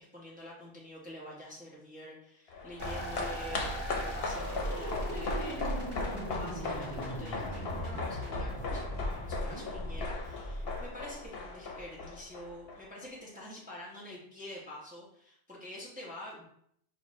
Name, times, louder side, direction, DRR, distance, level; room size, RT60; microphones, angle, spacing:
voice 1, 0.0-3.7 4.0-5.6 6.3-8.8 9.1-16.5, left 1 dB, 10° right, -5 dB, 0.9 m, -47 dB
sound 1, 2.5-13.1 13.3-13.4, left 3 dB, 70° left, 0.9 m, -38 dB
sound 2, 2.8-11.2, right 1 dB, 25° left, 1.2 m, -38 dB
5.9 x 2.5 x 3.1 m, 0.68 s
omnidirectional pair, 1.0 m